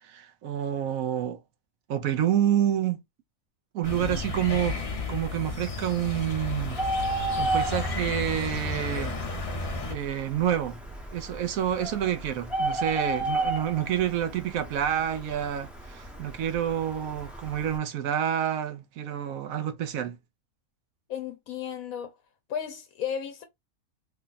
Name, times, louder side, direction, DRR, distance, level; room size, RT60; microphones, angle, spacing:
voice 1, 0.0-1.4 1.9-3.0 3.7-4.8 5.1-6.8 7.4-9.2 9.9-10.8 11.1-20.2, right 10 dB, 80° right, 1.0 m, -28 dB
sound 1, 3.8-10.0, left 3 dB, 35° left, 0.6 m, -33 dB
Bird, 6.6-17.8, right 2 dB, ahead, 0.7 m, -34 dB
voice 2, 21.1-22.2 22.5-23.5, left 8 dB, 80° left, 1.0 m, -34 dB
3.3 x 2.2 x 3.9 m
omnidirectional pair, 1.5 m